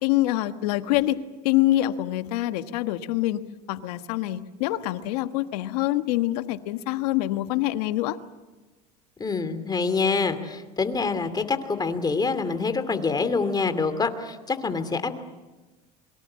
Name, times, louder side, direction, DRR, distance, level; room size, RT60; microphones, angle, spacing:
voice 1, 0.0-3.4 3.7-8.2, left 15 dB, 75° left, 10 dB, 1.4 m, -25 dB
voice 2, 9.2-15.2, left 4 dB, 20° left, 10 dB, 2.7 m, -26 dB
26.5 x 23.5 x 7.5 m, 1.2 s
supercardioid pair, 100°, 20 cm